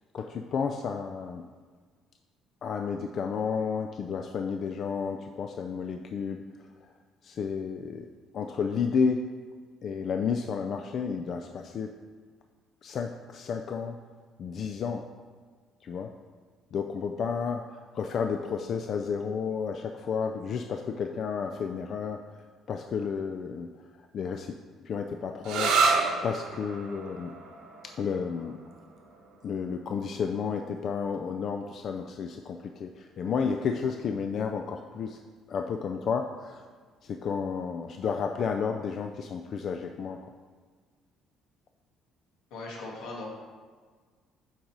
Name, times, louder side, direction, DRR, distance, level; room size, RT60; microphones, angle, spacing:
voice 1, 0.1-1.4 2.6-6.4 7.2-8.1 8.3-9.2 9.8-11.9 12.8-14.0 14.4-15.0 15.8-16.1 16.7-22.2 22.7-23.7 24.1-24.6 24.8-25.8 26.2-27.3 28.0-28.6 29.4-35.2 35.5-36.6 37.0-40.2, left 6 dB, 50° left, 5 dB, 0.4 m, -31 dB
sound 1, 25.4-32.8, right 4 dB, 80° right, 1.2 m, -32 dB
voice 2, 42.5-43.3, left 2 dB, 85° left, -2 dB, 1.9 m, -39 dB
8.7 x 4.0 x 4.6 m, 1.5 s
cardioid pair, 130°, 0 cm